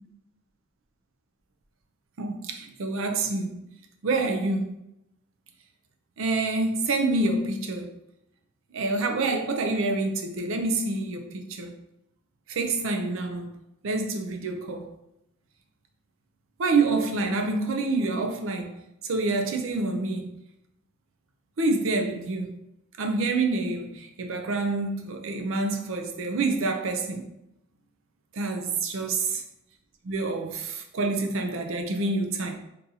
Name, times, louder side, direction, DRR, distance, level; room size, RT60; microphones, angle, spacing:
voice 1, 2.2-3.6 4.0-4.7 6.2-7.9 8.7-11.7 12.5-13.6 13.8-14.9 16.6-20.3 21.6-22.5 23.0-27.2 28.3-29.4 30.0-32.5, right 3 dB, 65° right, 0.5 m, -27 dB
3.7 x 2.7 x 2.7 m
head